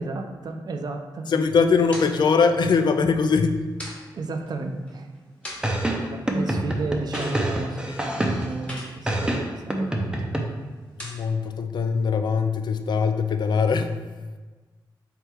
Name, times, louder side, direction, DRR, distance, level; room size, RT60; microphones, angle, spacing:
voice 1, 0.0-1.3 4.1-5.1 6.0-10.3, right 3 dB, 55° right, 6 dB, 0.5 m, -33 dB
voice 2, 1.3-3.6 7.9-8.0 11.0-14.0, left 5 dB, 65° left, 7 dB, 0.3 m, -21 dB
sound 1, 1.3-11.5, equal, 15° left, 1.2 m, -45 dB
sound 2, 5.6-8.6 9.1-10.4, right 1 dB, 10° right, 0.6 m, -26 dB
3.6 x 3.3 x 4.5 m, 1.3 s
cardioid pair, 90°, 8 cm